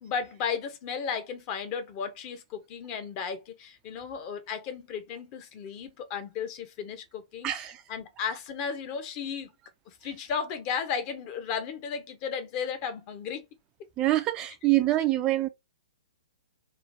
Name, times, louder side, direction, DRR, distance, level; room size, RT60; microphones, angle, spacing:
voice 1, 0.0-7.5 7.9-9.5 9.9-13.5, left 6 dB, 35° left, 0.7 m, -34 dB
voice 2, 7.4-7.8 14.0-15.5, right 16 dB, 25° right, 0.3 m, -25 dB
3.0 x 2.5 x 2.6 m
figure-of-eight pair, 120°, 3 cm